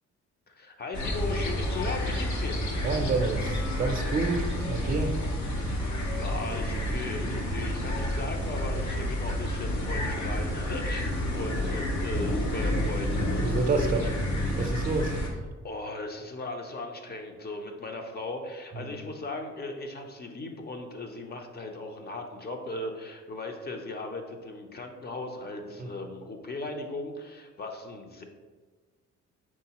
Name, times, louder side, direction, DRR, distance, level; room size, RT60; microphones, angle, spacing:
voice 1, 0.5-2.6 5.8-14.1 15.6-28.2, left 2 dB, 30° left, 4 dB, 0.6 m, -37 dB
sound 1, 0.9-15.3, left 1 dB, 75° left, 1.0 m, -29 dB
voice 2, 2.7-5.2 13.4-14.1 14.6-15.1 18.7-18.9 25.8-25.9, right 3 dB, 30° right, 3 dB, 0.5 m, -29 dB
4.6 x 3.8 x 2.9 m, 1.4 s
cardioid pair, 90°, 30 cm